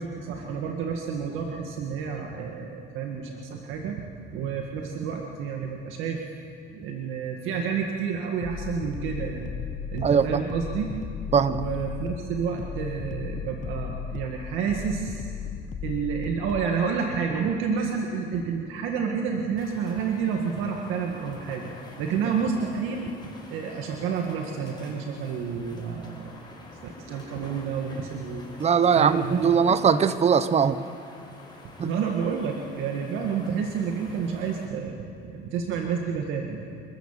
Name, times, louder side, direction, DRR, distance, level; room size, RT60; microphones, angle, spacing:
voice 1, 0.0-4.0 4.3-6.2 6.7-9.5 9.9-10.9 11.5-15.3 15.8-21.7 22.0-26.4 26.8-28.4 29.0-29.8 31.8-36.7, right 6 dB, 80° right, 2 dB, 1.9 m, -30 dB
sound 1, 8.4-16.7, left 8 dB, 40° left, 1.1 m, -36 dB
voice 2, 10.0-10.4 11.3-11.6 28.6-30.8 31.8-31.9, right 6 dB, 30° right, 13 dB, 0.9 m, -21 dB
sound 2, 19.6-34.7, left 2 dB, 20° left, 4.7 m, -47 dB
25.5 x 13.5 x 7.5 m, 2.4 s
cardioid pair, 100°, 21 cm